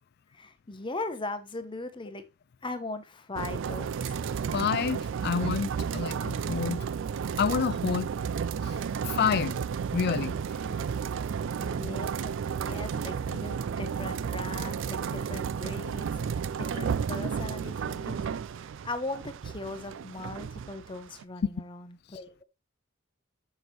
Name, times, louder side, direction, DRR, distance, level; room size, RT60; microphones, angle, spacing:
voice 1, 0.3-2.2 2.6-4.2 11.6-18.4 18.8-22.4, left 2 dB, 25° left, 0.8 m, -39 dB
sound 1, 3.4-21.2, right 6 dB, 60° right, 0.3 m, -32 dB
voice 2, 4.5-6.8 7.4-8.1 8.6-8.8 9.0-9.6 9.9-10.4, left 6 dB, 50° left, 0.4 m, -28 dB
6.9 x 6.0 x 3.1 m
head